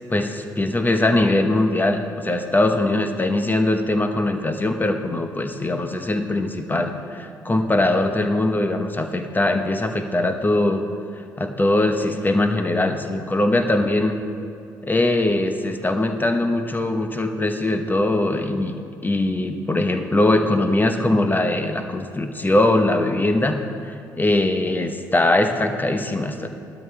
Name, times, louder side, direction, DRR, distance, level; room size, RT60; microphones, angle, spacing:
voice 1, 0.1-10.8 11.4-14.2 14.8-18.7 19.0-26.5, left 2 dB, 20° left, 6 dB, 1.1 m, -21 dB
15.5 x 12.5 x 3.4 m, 2.5 s
hypercardioid pair, 45°, 10 cm